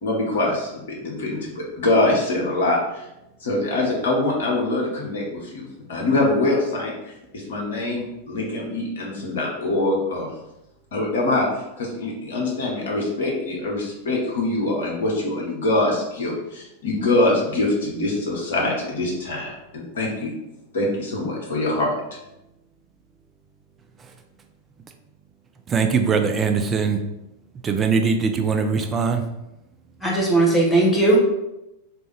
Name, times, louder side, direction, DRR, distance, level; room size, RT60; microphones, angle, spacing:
voice 1, 0.0-3.0 3.4-7.1 7.5-10.3 10.9-11.5 11.8-20.3 20.7-21.9, left 2 dB, 60° left, -2 dB, 1.0 m, -24 dB
voice 2, 25.7-27.0 27.6-29.3, right 5 dB, 20° right, 6 dB, 0.4 m, -21 dB
voice 3, 30.0-31.2, right 2 dB, 10° left, -4 dB, 0.9 m, -18 dB
3.3 x 2.6 x 3.3 m, 0.90 s
figure-of-eight pair, 90°, 0 cm